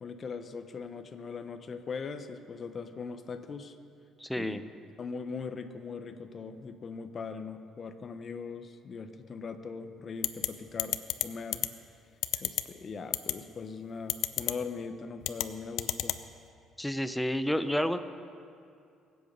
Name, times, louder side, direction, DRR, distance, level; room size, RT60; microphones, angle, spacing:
voice 1, 0.0-3.8 4.4-4.7 5.0-11.7 12.4-16.2, left 5 dB, 40° left, 8 dB, 0.9 m, -40 dB
voice 2, 4.2-4.6 16.8-18.0, equal, 5° left, 10 dB, 0.6 m, -30 dB
sound 1, 10.2-10.5 10.8-11.2 11.5-11.7 12.2-12.6 13.1-13.3 14.1-14.5 15.2-15.5 15.8-16.2, left 14 dB, 80° left, 0.6 m, -28 dB
23.5 x 8.0 x 5.4 m, 2.4 s
cardioid pair, 115°, 0 cm